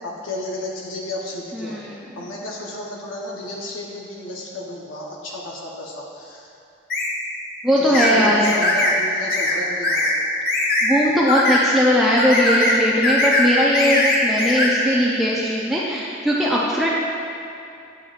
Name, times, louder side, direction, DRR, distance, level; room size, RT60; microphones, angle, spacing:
voice 1, 0.0-1.8 2.2-6.5 7.8-10.1, left 1 dB, 90° left, -3 dB, 0.9 m, -32 dB
voice 2, 1.5-2.1 7.6-8.5 10.8-16.9, equal, ahead, -6 dB, 0.4 m, -19 dB
sound 1, 6.9-7.1 7.9-8.1 8.4-8.9 9.3-9.5 9.8-10.1 10.4-10.9 11.3-11.6 12.2-12.8 13.0-13.5 13.7-14.7, left 2 dB, 50° left, 0.9 m, -20 dB
8.7 x 7.2 x 2.4 m, 2.7 s
head